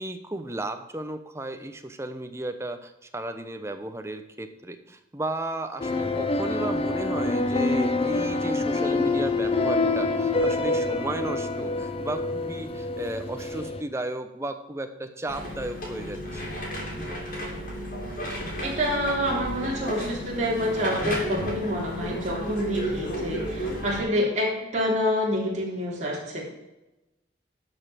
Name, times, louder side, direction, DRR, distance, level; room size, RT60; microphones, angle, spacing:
voice 1, 0.0-16.5, right 2 dB, 15° right, 7 dB, 0.8 m, -34 dB
sound 1, 5.8-13.8, left 2 dB, 30° left, 0.7 m, -26 dB
sound 2, 15.3-24.0, equal, 45° left, 3.3 m, -33 dB
voice 2, 18.6-26.4, equal, 40° right, -4 dB, 3.7 m, -27 dB
12.0 x 5.6 x 6.3 m, 0.97 s
head